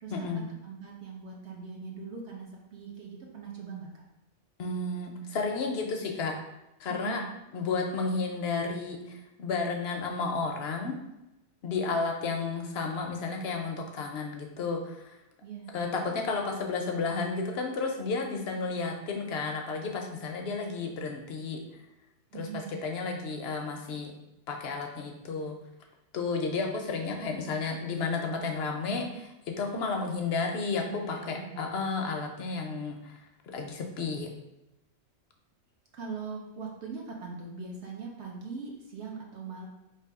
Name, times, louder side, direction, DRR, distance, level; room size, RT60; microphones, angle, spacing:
voice 1, 0.1-0.5 4.6-6.3 6.8-7.2 7.5-11.0 11.6-15.2 15.7-21.6 22.3-24.1 24.5-25.6 26.1-34.3, left 4 dB, 60° left, 2 dB, 0.7 m, -32 dB
voice 2, 0.6-4.0 6.9-7.3 15.4-15.7 22.3-22.8 30.8-31.8 35.9-39.7, right 5 dB, 60° right, -1 dB, 0.9 m, -41 dB
3.4 x 2.9 x 4.6 m, 0.95 s
omnidirectional pair, 1.4 m